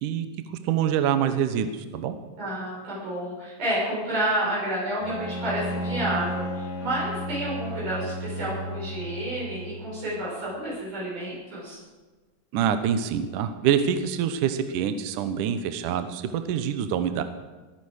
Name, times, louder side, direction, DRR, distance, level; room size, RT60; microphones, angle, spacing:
voice 1, 0.0-2.2 12.5-17.2, right 8 dB, 75° right, 9 dB, 1.9 m, -26 dB
voice 2, 2.4-11.8, right 1 dB, 55° right, -6 dB, 8.3 m, -30 dB
Bowed string instrument, 5.0-10.3, equal, 85° left, 4.7 m, -34 dB
21.0 x 10.0 x 6.6 m, 1.3 s
omnidirectional pair, 5.1 m